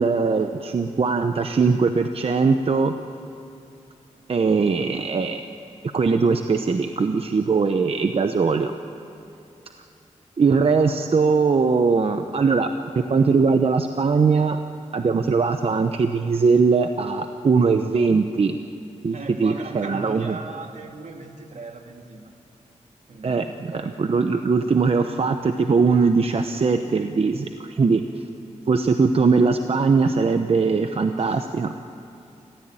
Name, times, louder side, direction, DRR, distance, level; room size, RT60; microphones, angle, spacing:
voice 1, 0.0-2.9 4.3-5.4 5.9-8.7 10.4-12.7 12.9-14.6 14.9-18.6 19.0-20.3 23.2-28.0 28.7-31.7, right 4 dB, 50° right, 7 dB, 0.9 m, -20 dB
voice 2, 19.1-22.4 23.1-23.6 31.1-31.4, right 3 dB, 75° right, 3 dB, 2.3 m, -38 dB
29.0 x 15.0 x 9.0 m, 2.6 s
wide cardioid pair, 110°, 13 cm